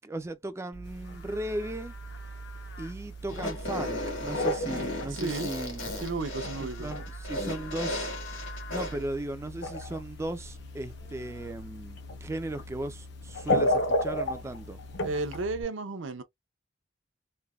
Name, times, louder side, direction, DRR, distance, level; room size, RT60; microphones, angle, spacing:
voice 1, 0.0-1.9 2.8-5.9 6.6-8.1 8.7-14.8, right 1 dB, 15° right, 0.3 m, -37 dB
Livestock farm animals working animals, 0.7-15.6, right 1 dB, 90° left, 1.1 m, -43 dB
sound 1, 1.0-1.4 1.8-1.9 2.8-2.9 3.3-3.6 3.9-6.1 6.4-7.1 7.4-7.5 8.4-8.5 9.6-10.0 12.0-12.2 12.6-12.7 13.3-15.4, left 1 dB, 55° left, 0.7 m, -30 dB
Fart, 3.3-9.1, left 1 dB, 75° left, 1.5 m, -35 dB
voice 2, 5.1-5.5 6.0-6.9 15.0-16.2, right 3 dB, 70° right, 0.6 m, -33 dB
3.2 x 2.1 x 2.3 m
head